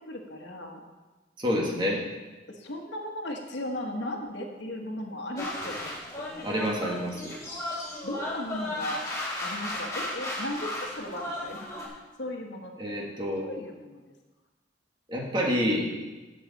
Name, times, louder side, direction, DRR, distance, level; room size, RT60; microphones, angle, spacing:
voice 1, 0.1-0.8 2.5-6.4 8.0-9.0 9.4-13.0 13.4-14.0, left 1 dB, 70° left, 2 dB, 1.3 m, -37 dB
voice 2, 1.4-2.0 6.4-7.3 12.8-13.4 15.1-15.9, equal, 25° right, -1 dB, 1.6 m, -28 dB
sound 1, 5.4-11.9, left 1 dB, 15° left, 2.0 m, -35 dB
11.0 x 7.7 x 4.1 m, 1.2 s
head